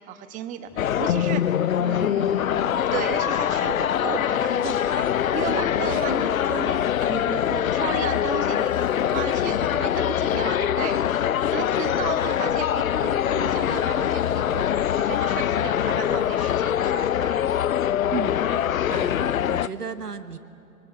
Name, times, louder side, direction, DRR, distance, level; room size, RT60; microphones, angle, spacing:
voice 1, 0.1-6.8 7.1-17.5, right 9 dB, 15° right, 10 dB, 1.1 m, -34 dB
sound 1, 0.7-5.8, left 1 dB, 5° left, 1.6 m, -51 dB
oompah pah, 0.8-19.7, left 10 dB, 65° left, 0.6 m, -23 dB
Liquid, 5.5-5.6 5.8-6.1 6.4-6.6 7.0-7.4 8.0-8.2 8.6-9.5 9.9-10.3, right 6 dB, 65° right, 2.3 m, -49 dB
voice 2, 18.9-20.4, right 5 dB, 85° right, 11 dB, 1.4 m, -33 dB
24.0 x 23.5 x 9.2 m, 2.7 s
figure-of-eight pair, 125°, 45 cm